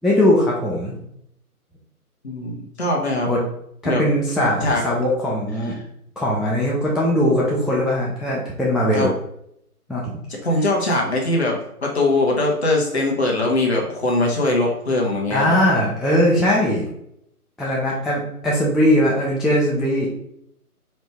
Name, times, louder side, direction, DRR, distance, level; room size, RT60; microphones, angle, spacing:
voice 1, 0.0-1.0 3.3-3.4 3.8-5.7 6.2-9.1 9.9-10.3 15.3-16.9 17.6-20.1, left 1 dB, ahead, -5 dB, 0.4 m, -20 dB
voice 2, 2.2-3.3 3.8-4.0 4.6-4.8 8.9-9.1 10.3-15.6, left 2 dB, 45° left, -1 dB, 1.2 m, -21 dB
4.3 x 2.8 x 3.4 m, 0.74 s
figure-of-eight pair, 150°, 45 cm